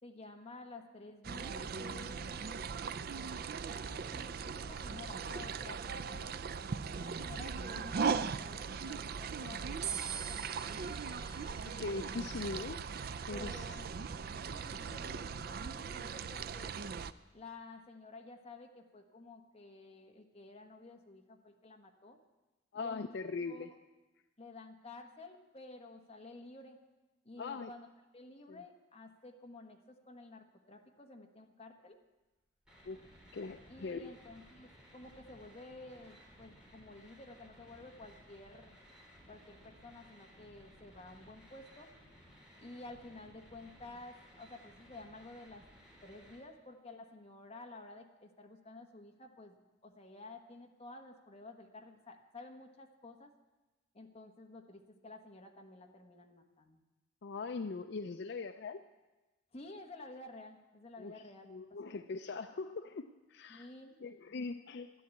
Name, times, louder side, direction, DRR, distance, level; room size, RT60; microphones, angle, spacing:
voice 1, 0.0-2.7 3.6-6.5 7.0-10.9 13.3-13.9 14.4-16.7 17.3-22.2 22.7-23.1 23.4-23.7 24.4-26.8 27.2-27.9 28.1-32.0 33.7-38.8 39.3-41.9 42.6-45.6 46.0-53.3 53.9-56.8 59.5-61.9 63.5-64.2, left 2 dB, 35° left, 3 dB, 1.3 m, -52 dB
sound 1, 1.2-17.1, right 5 dB, 55° right, 0.4 m, -39 dB
sound 2, 9.8-16.2, right 8 dB, 35° right, 3.0 m, -47 dB
voice 2, 11.6-12.8 13.3-13.6 22.7-23.7 27.4-27.7 28.5-28.6 32.8-33.0 33.3-34.1 57.2-58.8 61.0-61.2 61.5-63.7 64.0-64.9, left 4 dB, 65° left, 9 dB, 0.5 m, -41 dB
sound 3, 32.6-46.4, equal, 5° right, 4.2 m, -59 dB
13.0 x 10.5 x 8.2 m, 1.1 s
head